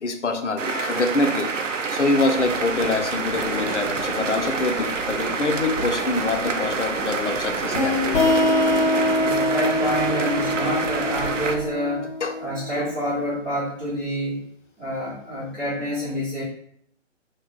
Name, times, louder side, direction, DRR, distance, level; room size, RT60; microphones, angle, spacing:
voice 1, 0.0-8.2 12.2-12.4 12.8-12.9, left 3 dB, 70° left, 6 dB, 0.6 m, -25 dB
sound 1, 0.6-11.6, right 5 dB, 75° right, 0.6 m, -28 dB
Tap, 2.3-11.6, right 1 dB, 20° right, 1.0 m, -35 dB
sound 2, 7.7-13.1, left 2 dB, 45° left, 1.1 m, -24 dB
voice 2, 9.2-12.1 12.4-14.4 14.8-16.4, equal, 5° left, -15 dB, 1.4 m, -27 dB
3.7 x 3.1 x 2.9 m, 0.67 s
figure-of-eight pair, 140°, 38 cm